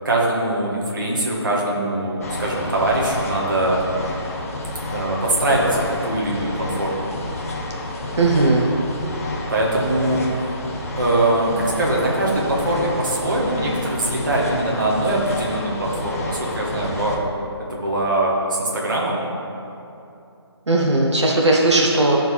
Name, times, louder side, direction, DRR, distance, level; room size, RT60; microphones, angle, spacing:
voice 1, 0.0-3.9 4.9-7.1 9.5-10.3 11.0-17.2 17.7-19.2, right 1 dB, 45° right, -4 dB, 2.0 m, -22 dB
sound 1, 2.2-17.2, left 2 dB, 35° left, 1.0 m, -30 dB
voice 2, 8.2-8.7 20.7-22.2, right 2 dB, 85° right, -1 dB, 1.3 m, -17 dB
13.0 x 4.6 x 5.6 m, 2.7 s
hypercardioid pair, 175°, 14 cm